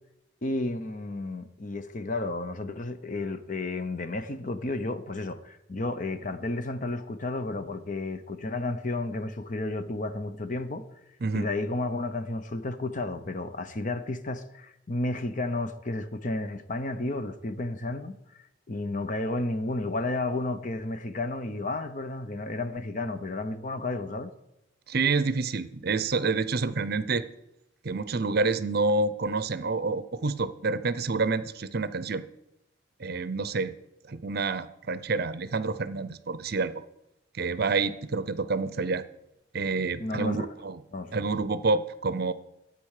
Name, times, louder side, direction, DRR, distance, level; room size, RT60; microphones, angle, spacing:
voice 1, 0.4-10.8 11.3-18.1 18.7-24.3 40.0-40.5 40.9-41.2, left 2 dB, 45° left, 0.9 m, -32 dB
voice 2, 24.9-27.3 27.8-32.3 33.0-33.7 34.1-36.8 37.3-39.0 39.5-40.8 41.1-42.3, right 3 dB, 55° right, 0.7 m, -28 dB
12.0 x 8.6 x 6.6 m
head